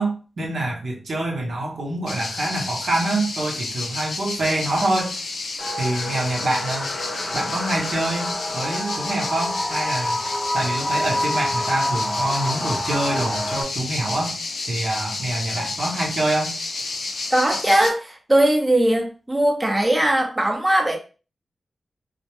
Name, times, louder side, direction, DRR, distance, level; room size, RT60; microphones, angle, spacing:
voice 1, 0.0-5.1 5.8-6.9 7.3-10.2 10.5-14.4 14.7-16.6, right 2 dB, 75° right, -1 dB, 0.7 m, -25 dB
sound 1, 2.1-17.9, left 3 dB, 90° left, 0.4 m, -31 dB
sound 2, 5.6-13.6, left 1 dB, 25° left, 0.5 m, -28 dB
voice 2, 17.3-21.0, right 1 dB, 20° right, 1 dB, 0.6 m, -19 dB
2.1 x 2.1 x 2.9 m, 0.34 s
cardioid pair, 70°, 0 cm